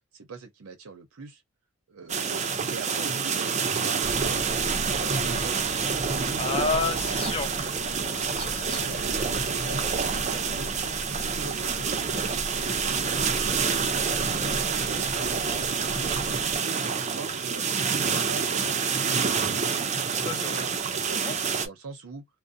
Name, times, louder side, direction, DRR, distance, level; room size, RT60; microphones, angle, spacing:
voice 1, 0.1-1.4 1.9-4.4 4.8-5.8 6.4-7.5 9.0-9.1 9.6-10.7 11.3-13.3 13.8-15.3 15.9-19.4 20.6-21.2 21.6-22.3, right 4 dB, 80° right, 0.6 m, -43 dB
sound 1, 2.1-21.7, right 5 dB, 35° right, 0.4 m, -27 dB
sound 2, 4.0-16.6, equal, 85° left, 0.9 m, -38 dB
voice 2, 6.4-7.5 8.2-8.9 20.1-20.6 21.2-21.5, left 4 dB, 25° left, 0.6 m, -31 dB
2.5 x 2.0 x 2.5 m
head